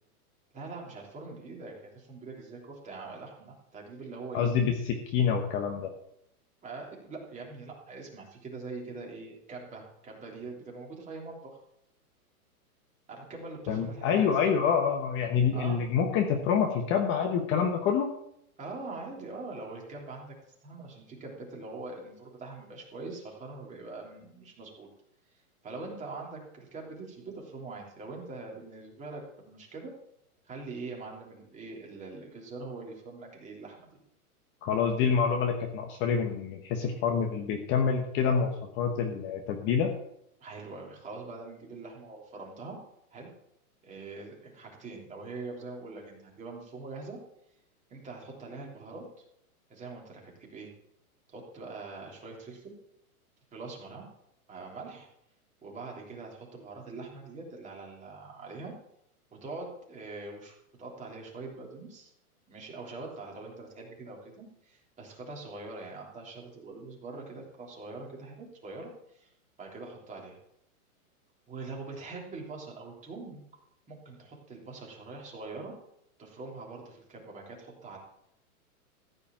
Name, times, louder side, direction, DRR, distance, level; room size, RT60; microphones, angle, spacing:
voice 1, 0.5-4.5 6.6-11.6 13.1-14.4 15.5-15.9 18.6-20.3 20.6-24.9 25.6-29.9 30.5-34.0 40.4-42.8 43.1-43.3 43.8-47.2 47.9-49.0 49.7-50.7 51.3-52.7 53.5-54.1 54.5-55.1 55.6-58.7 59.4-62.1 62.5-69.3 69.6-70.4 71.5-73.4 73.9-75.7 76.2-78.0, right 3 dB, 15° right, -2 dB, 3.4 m, -43 dB
voice 2, 4.3-5.9 13.7-18.1 34.6-38.5 38.8-39.9, left 6 dB, 25° left, 2 dB, 1.3 m, -27 dB
14.5 x 5.2 x 8.9 m, 0.75 s
hypercardioid pair, 145°, 45 cm